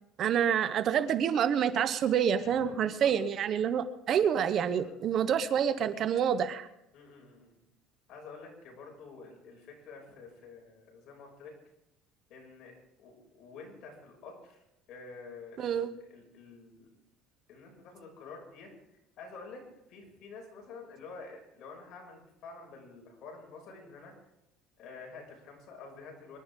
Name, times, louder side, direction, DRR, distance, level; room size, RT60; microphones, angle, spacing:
voice 1, 0.2-6.7 15.6-15.9, right 8 dB, 45° right, 11 dB, 1.0 m, -27 dB
voice 2, 2.4-3.1 4.7-4.9 6.9-7.5 8.1-11.5 12.3-12.7 13.0-14.6 14.9-16.9 17.5-18.7 19.2-19.6 19.9-24.1 24.8-26.4, left 4 dB, 55° left, 0 dB, 6.4 m, -49 dB
25.5 x 11.5 x 3.7 m, 0.85 s
cardioid pair, 135°, 0 cm